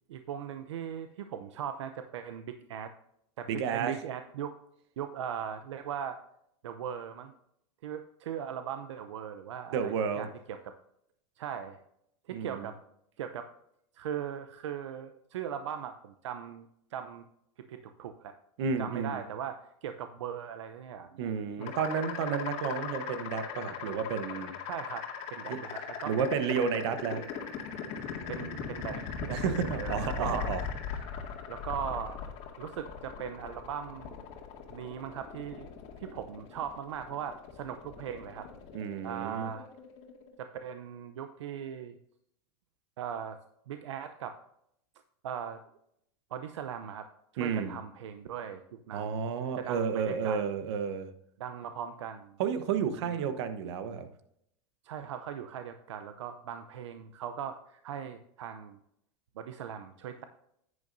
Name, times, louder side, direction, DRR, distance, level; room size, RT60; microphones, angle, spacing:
voice 1, 0.1-2.9 3.4-4.6 5.0-6.2 6.6-7.3 7.8-10.7 11.4-11.8 12.3-12.8 13.2-13.5 13.9-17.2 17.7-18.3 18.8-21.3 21.6-21.8 24.7-26.3 28.3-30.5 31.5-32.2 32.6-34.2 34.7-35.7 36.0-38.5 39.0-39.7 40.4-41.9 43.0-43.4 43.7-44.4 45.2-45.6 46.3-47.1 47.3-48.6 48.9-49.3 49.6-50.5 51.4-52.4 53.0-53.2 54.8-58.8 59.4-60.2, right 8 dB, 90° right, 9 dB, 0.7 m, -39 dB
voice 2, 3.5-3.9 9.7-10.3 12.3-12.7 18.6-19.2 21.2-24.6 25.5-25.6 26.1-27.3 29.3-30.6 38.7-39.5 47.4-47.7 48.9-51.1 52.4-54.1, right 6 dB, 70° right, 10 dB, 1.1 m, -31 dB
sound 1, 21.6-40.4, left 7 dB, 45° left, 2.0 m, -39 dB
10.5 x 9.6 x 2.6 m, 0.74 s
supercardioid pair, 125°, 15 cm